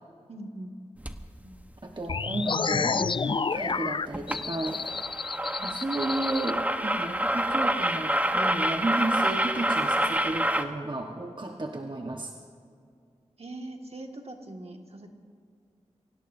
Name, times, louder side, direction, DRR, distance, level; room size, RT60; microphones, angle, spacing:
voice 1, 0.3-0.7 13.4-15.1, right 2 dB, 60° right, 3 dB, 1.9 m, -41 dB
sound 1, 1.0-1.2 3.7-3.8 4.1-4.4 4.7-10.6, right 1 dB, 10° right, 1.0 m, -27 dB
voice 2, 1.4-4.8 5.6-12.3, right 2 dB, 40° right, 2 dB, 1.3 m, -33 dB
sound 2, 2.1-6.5, left 5 dB, 45° left, 0.4 m, -30 dB
24.0 x 17.0 x 2.7 m, 2.3 s
cardioid pair, 40°, 12 cm